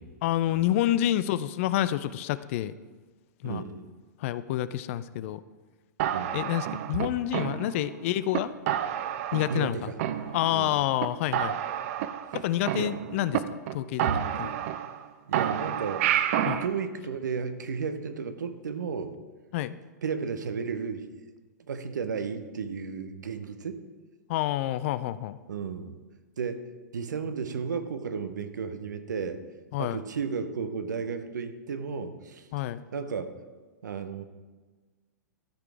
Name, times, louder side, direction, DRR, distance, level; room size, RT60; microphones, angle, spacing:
voice 1, 0.2-2.7 3.4-3.6 4.2-5.4 6.3-8.5 9.3-9.9 10.3-11.6 12.3-14.1 14.4-14.5 16.5-16.6 19.5-19.8 24.3-25.4 29.7-30.0 32.5-32.8, left 13 dB, 45° left, 15 dB, 0.3 m, -28 dB
voice 2, 3.4-3.9 6.1-6.3 9.5-10.0 10.5-10.8 12.8-12.9 15.3-16.1 16.6-19.1 20.0-21.1 21.7-23.8 25.5-26.0 26.4-26.6 26.9-29.4 29.8-32.5 32.9-33.3 33.8-34.2, right 6 dB, 80° right, 10 dB, 0.8 m, -33 dB
sound 1, 6.0-7.9 8.3-8.4 8.7-9.7 10.0-10.7 11.0-11.1 11.3-13.4 13.7-13.8 14.0-15.0 15.3-16.7, right 11 dB, 50° right, 0.5 m, -29 dB
13.0 x 5.0 x 3.3 m, 1.3 s
hypercardioid pair, 120°, 10 cm